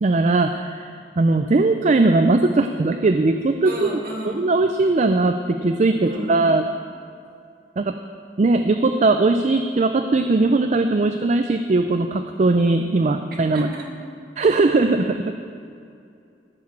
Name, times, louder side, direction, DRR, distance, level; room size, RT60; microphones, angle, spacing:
voice 1, 0.0-3.9 4.2-6.7 7.8-8.0 8.4-13.7 14.4-15.3, right 3 dB, 40° right, 7 dB, 0.4 m, -19 dB
voice 2, 3.6-4.5 6.0-6.5 13.5-14.1, right 1 dB, 55° right, -3 dB, 2.7 m, -33 dB
15.0 x 5.9 x 7.4 m, 2.5 s
head